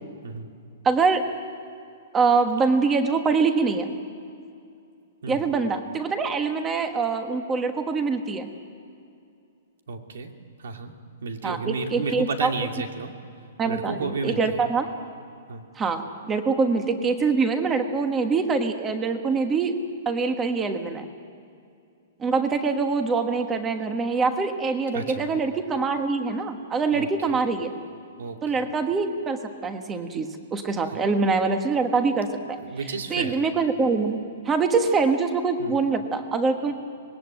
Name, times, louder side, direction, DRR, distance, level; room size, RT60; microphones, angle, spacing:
voice 1, 0.8-1.2 2.1-3.9 5.3-8.5 11.4-12.5 13.6-14.9 15.7-19.7 20.0-21.0 22.2-27.7 28.4-32.6 33.1-34.2 34.4-36.7, right 4 dB, 10° right, 6 dB, 1.4 m, -24 dB
voice 2, 9.9-10.3 10.6-10.9 11.2-13.1 13.7-14.6 15.5-15.6 24.9-25.3 26.9-27.4 28.2-28.4 32.6-33.3 35.6-35.8, right 4 dB, 90° right, 4 dB, 2.5 m, -32 dB
25.5 x 20.0 x 9.0 m, 2.4 s
hypercardioid pair, 175°, 0 cm